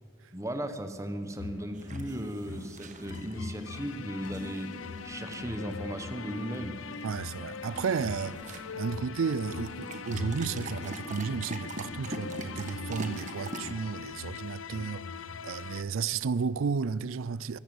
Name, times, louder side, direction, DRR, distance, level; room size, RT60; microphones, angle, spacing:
voice 1, 0.3-4.7 5.0-6.8, equal, 15° right, 1.2 m, -36 dB
sound 1, 1.4-15.8, left 5 dB, 70° left, 0.6 m, -41 dB
sound 2, 1.7-13.8, right 1 dB, 35° right, 1.5 m, -44 dB
voice 2, 7.0-15.1 15.4-17.6, right 5 dB, 75° right, 0.4 m, -33 dB
23.5 x 14.5 x 7.9 m
head